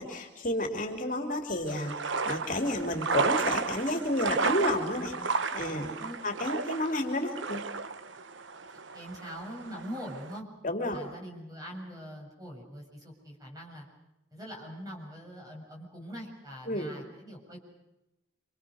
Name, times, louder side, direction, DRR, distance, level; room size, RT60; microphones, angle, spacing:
voice 1, 0.0-5.2 5.5-5.9 6.2-7.6 10.6-11.0 16.7-16.9, left 1 dB, 40° left, 3 dB, 3.3 m, -31 dB
sound 1, 1.7-10.4, right 4 dB, 75° right, 1.1 m, -33 dB
voice 2, 8.9-10.5 10.9-13.9 14.3-17.6, equal, 20° right, 0 dB, 7.3 m, -43 dB
28.0 x 26.5 x 6.5 m, 0.94 s
head